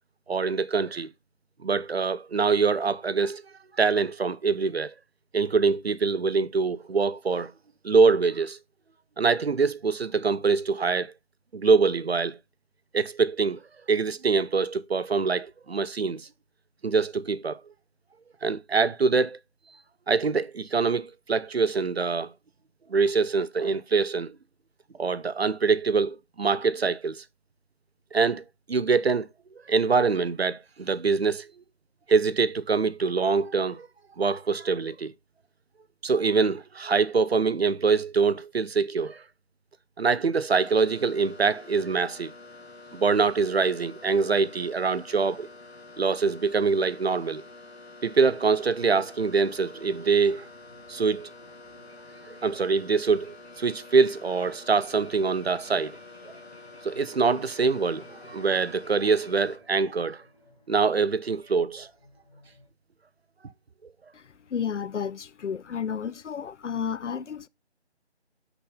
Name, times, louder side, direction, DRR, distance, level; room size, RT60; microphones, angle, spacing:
voice 1, 0.3-1.1 1.6-3.4 3.8-4.9 5.3-7.5 7.8-8.6 9.2-11.1 11.5-12.4 12.9-13.6 13.9-16.3 16.8-17.6 18.4-19.4 20.1-22.3 22.9-24.4 25.0-27.2 28.1-29.3 29.7-31.5 32.1-33.9 34.2-35.1 36.0-39.2 40.0-42.3 42.9-45.5 46.0-47.4 48.0-50.4 50.9-51.3 52.3-56.0 56.3-56.4 56.8-60.2 60.7-61.9, right 4 dB, 60° right, 0.6 m, -24 dB
sound 1, 40.6-59.6, left 3 dB, 65° left, 1.2 m, -48 dB
sound 2, 48.7-62.7, equal, 35° left, 3.0 m, -57 dB
voice 2, 64.5-67.5, left 7 dB, 85° left, 0.5 m, -32 dB
5.9 x 5.9 x 3.6 m
figure-of-eight pair, 170°, 34 cm